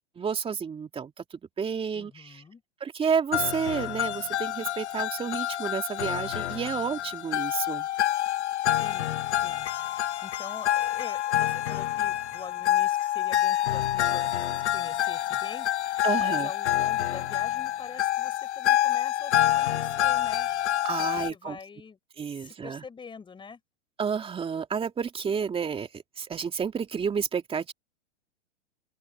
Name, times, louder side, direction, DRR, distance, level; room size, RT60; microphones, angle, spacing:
voice 1, 0.2-2.4 2.8-7.9 16.0-16.5 20.8-21.6 22.2-22.8 24.0-27.7, right 6 dB, 15° right, 2.5 m, -30 dB
voice 2, 1.9-2.6 8.7-22.0 22.3-23.6, left 5 dB, 15° left, 5.3 m, -45 dB
sound 1, 3.3-21.3, left 13 dB, 75° left, 1.4 m, -27 dB
open air
hypercardioid pair, 125°, 35 cm